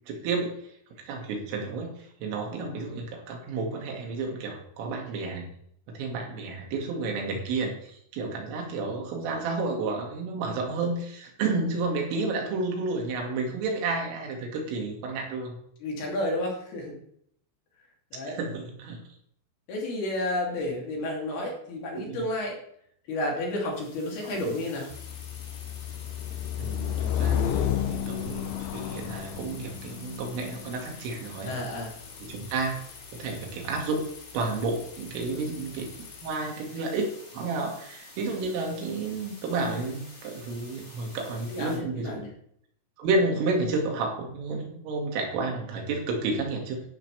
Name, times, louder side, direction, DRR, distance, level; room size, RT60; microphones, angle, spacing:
voice 1, 0.1-0.7 1.1-5.5 5.9-15.6 18.2-19.0 21.9-22.2 24.2-24.4 26.6-31.5 32.2-32.8 33.1-34.0 34.3-35.9 36.2-37.1 37.3-42.2 43.0-46.8, right 3 dB, 80° right, 1 dB, 4.8 m, -31 dB
voice 2, 15.8-17.0 18.1-18.4 19.7-22.6 23.1-24.9 31.4-31.9 41.5-42.3, left 1 dB, 55° left, -2 dB, 4.6 m, -31 dB
sound 1, 23.7-41.8, left 2 dB, 25° left, 3.9 m, -49 dB
sound 2, 24.9-36.3, left 10 dB, 90° left, 2.3 m, -33 dB
14.5 x 11.0 x 3.5 m, 0.68 s
omnidirectional pair, 5.7 m